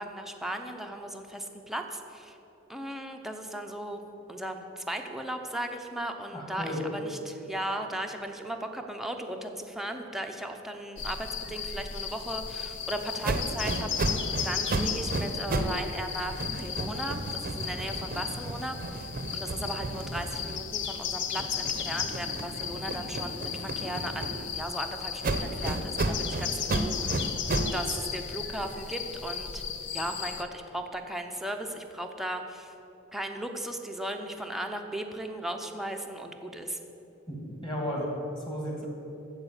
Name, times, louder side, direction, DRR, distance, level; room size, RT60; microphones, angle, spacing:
voice 1, 0.0-2.4 2.7-4.0 4.3-14.2 14.4-27.3 27.7-29.6 29.9-32.7 33.1-36.8, right 1 dB, ahead, 3 dB, 0.7 m, -37 dB
voice 2, 6.3-6.8 37.3-38.1 38.5-38.9, equal, 20° left, -1 dB, 2.5 m, -34 dB
sound 1, 11.0-30.4, left 8 dB, 60° left, 0.7 m, -36 dB
sound 2, 13.2-15.8 16.1-20.9 21.3-24.7 25.2-27.8, right 2 dB, 45° right, 0.7 m, -33 dB
14.0 x 4.8 x 8.3 m, 3.0 s
head